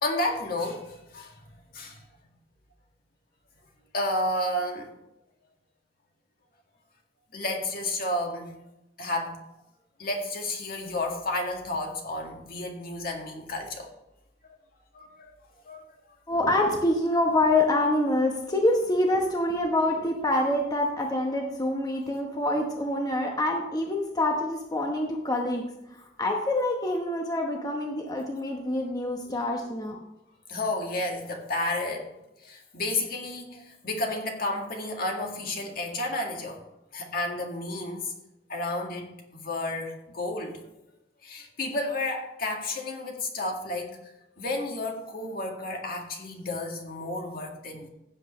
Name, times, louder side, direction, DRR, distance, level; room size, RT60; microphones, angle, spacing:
voice 1, 0.0-1.4 1.7-2.0 3.9-4.9 7.3-8.5 9.0-9.4 10.0-13.9 14.9-15.3 15.7-15.8 30.5-32.1 32.4-36.6 36.9-38.1 38.5-40.6 41.2-44.0 44.4-47.9, left 2 dB, 60° left, 1 dB, 1.9 m, -31 dB
voice 2, 16.3-25.6 26.2-30.0, left 1 dB, 20° left, 1 dB, 1.0 m, -26 dB
16.0 x 7.7 x 3.2 m, 0.89 s
head